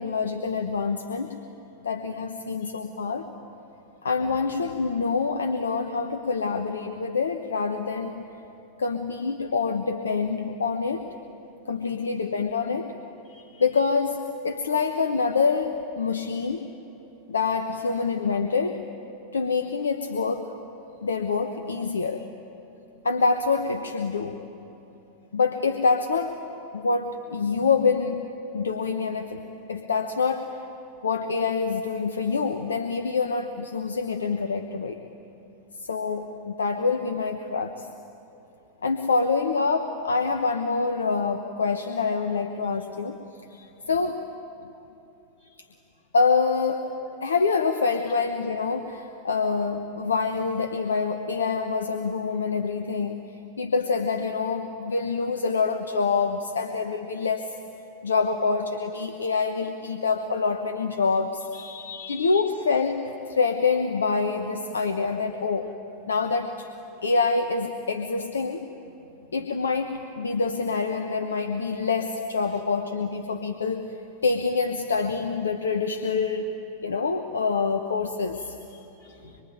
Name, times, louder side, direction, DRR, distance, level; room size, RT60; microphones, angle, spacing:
voice 1, 0.0-1.4 1.8-3.3 4.0-8.2 8.8-11.0 11.7-12.9 13.6-16.6 17.3-18.8 19.3-20.5 21.0-22.2 23.0-24.4 25.3-26.4 26.7-28.2 28.5-30.6 31.0-35.0 35.8-37.9 38.8-43.2 43.9-44.2 46.1-46.9 47.2-53.3 53.6-57.5 58.0-61.5 62.1-65.7 66.1-66.7 67.0-68.6 69.3-73.9 74.2-78.6, left 4 dB, 70° left, 6 dB, 1.1 m, -26 dB
voice 2, 61.6-62.4 78.7-79.4, left 7 dB, 50° left, 2 dB, 4.4 m, -43 dB
25.0 x 23.5 x 9.2 m, 3.0 s
figure-of-eight pair, 90°, 0 cm